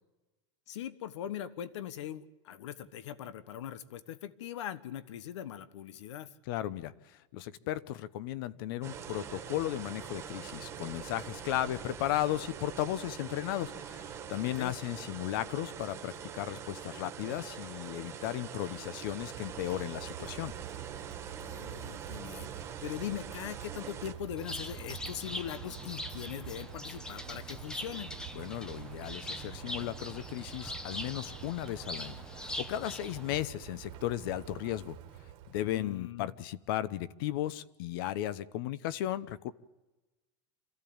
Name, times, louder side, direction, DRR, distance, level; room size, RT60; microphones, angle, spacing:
voice 1, 0.7-6.3 14.4-14.8 21.4-28.1 35.7-36.3, left 11 dB, 75° left, 15 dB, 1.2 m, -41 dB
voice 2, 6.5-20.5 28.3-35.0 35.5-39.5, left 13 dB, 50° left, 17 dB, 0.9 m, -35 dB
sound 1, 8.8-24.1, right 8 dB, 15° right, 1.7 m, -44 dB
Rain, 18.8-36.1, right 11 dB, 35° right, 1.7 m, -47 dB
Bird, 24.4-33.4, left 1 dB, 5° left, 0.8 m, -43 dB
27.0 x 15.5 x 8.8 m, 1.1 s
supercardioid pair, 175°, 15 cm